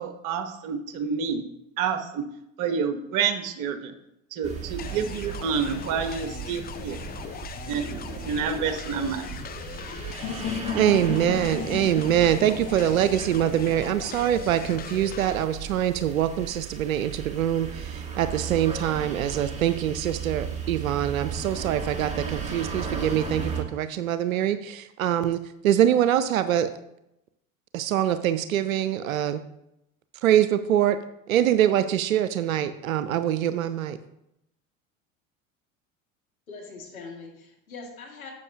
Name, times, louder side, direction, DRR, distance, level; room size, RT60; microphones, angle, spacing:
voice 1, 0.0-1.4 1.8-2.2 2.6-3.9 4.3-7.0 7.7-7.9 8.2-9.3, right 6 dB, 50° right, 7 dB, 1.1 m, -28 dB
sound 1, 4.4-23.6, right 6 dB, 15° right, 2.1 m, -36 dB
sound 2, 4.8-15.4, left 8 dB, 25° left, 0.5 m, -40 dB
sound 3, 10.2-14.2, left 7 dB, 50° left, 3.8 m, -35 dB
voice 2, 10.7-26.7 27.7-29.4 30.2-31.0 31.3-34.0, right 11 dB, 80° right, 12 dB, 0.6 m, -24 dB
voice 3, 36.5-38.3, left 4 dB, 85° left, 0 dB, 2.2 m, -42 dB
11.5 x 7.7 x 2.8 m, 0.83 s
hypercardioid pair, 75°, 41 cm